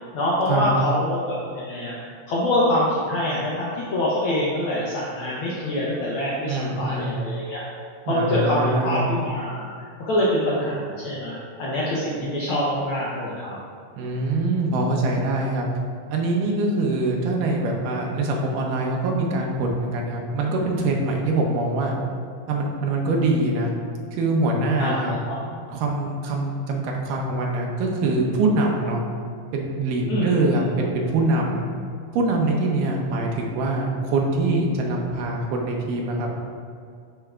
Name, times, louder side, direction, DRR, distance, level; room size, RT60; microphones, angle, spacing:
voice 1, 0.1-7.6 8.1-9.7 10.0-13.6 24.8-25.0 25.3-25.4 30.1-30.3, left 1 dB, 70° left, -6 dB, 1.2 m, -25 dB
voice 2, 6.5-7.2 8.1-9.1 14.0-15.7 16.1-22.0 22.5-23.7 24.1-25.2 25.4-29.0 29.5-31.7 32.1-36.3, right 2 dB, 90° right, 0 dB, 2.5 m, -24 dB
11.0 x 5.6 x 2.5 m, 2.3 s
omnidirectional pair, 3.6 m